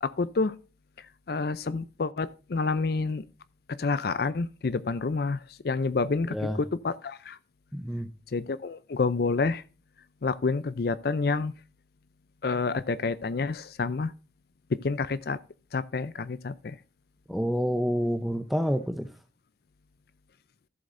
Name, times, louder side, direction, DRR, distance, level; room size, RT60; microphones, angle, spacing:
voice 1, 0.0-0.5 1.3-3.2 3.8-5.4 5.6-7.4 8.3-9.6 10.2-11.5 12.4-14.1 14.8-15.4 15.7-16.7, left 4 dB, 55° left, 0.4 m, -28 dB
voice 2, 7.7-8.1 17.3-19.1, equal, ahead, 0.6 m, -28 dB
13.5 x 7.7 x 2.6 m
head